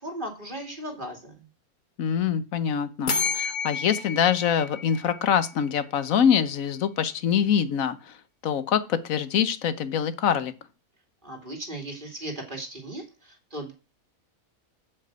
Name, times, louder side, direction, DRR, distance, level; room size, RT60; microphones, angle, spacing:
voice 1, 0.0-1.3 11.2-13.7, right 1 dB, 35° right, 2.6 m, -37 dB
voice 2, 2.0-8.2 8.4-10.5, left 8 dB, 70° left, 1.3 m, -24 dB
sound 1, 3.1-5.8, left 5 dB, 35° left, 1.0 m, -31 dB
8.5 x 5.7 x 8.0 m
omnidirectional pair, 1.5 m